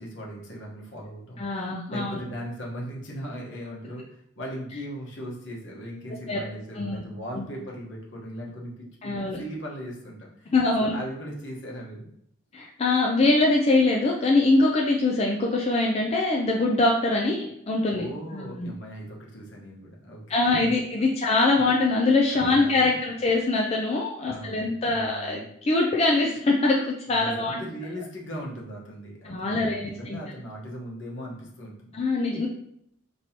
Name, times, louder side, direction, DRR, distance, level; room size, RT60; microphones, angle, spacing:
voice 1, 0.0-12.1 17.9-20.2 20.5-20.7 22.3-23.0 24.2-25.4 27.1-32.0, equal, 65° left, -2 dB, 1.2 m, -38 dB
voice 2, 1.4-2.2 6.3-6.4 6.7-7.0 7.4-7.5 9.0-9.4 10.5-11.0 12.5-18.0 18.3-18.7 20.3-27.6 29.2-30.2 31.9-32.5, left 2 dB, 30° left, -1 dB, 0.4 m, -23 dB
5.3 x 3.0 x 2.9 m, 0.73 s
head